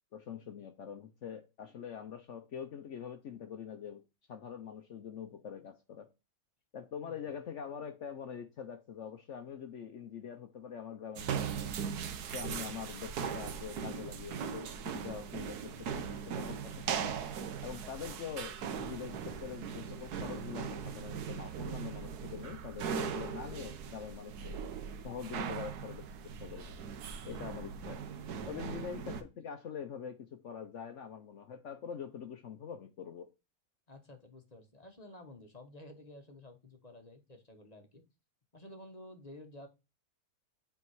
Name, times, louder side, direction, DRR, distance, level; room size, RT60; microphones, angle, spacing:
voice 1, 0.1-4.0 4.3-6.1 6.7-11.6 12.3-17.1 17.6-24.6 25.0-26.8 27.2-28.1 28.5-33.3, left 7 dB, 60° left, 0.9 m, -44 dB
sound 1, 11.2-29.2, right 7 dB, 85° right, 1.4 m, -39 dB
voice 2, 33.9-38.0 38.5-39.7, left 1 dB, 30° left, 1.0 m, -52 dB
8.6 x 3.6 x 4.7 m
omnidirectional pair, 1.6 m